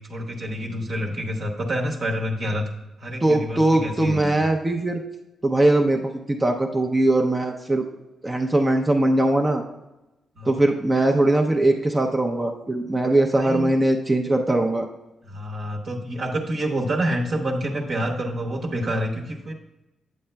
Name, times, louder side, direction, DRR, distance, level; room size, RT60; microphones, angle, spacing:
voice 1, 0.1-2.7 3.0-4.4 10.4-10.5 13.3-13.7 15.3-19.5, equal, 50° right, 0 dB, 0.9 m, -27 dB
voice 2, 3.2-5.0 5.4-7.9 8.2-9.6 10.4-14.9, right 1 dB, 15° right, 3 dB, 0.5 m, -21 dB
8.3 x 7.7 x 2.2 m, 0.97 s
cardioid pair, 135°, 0 cm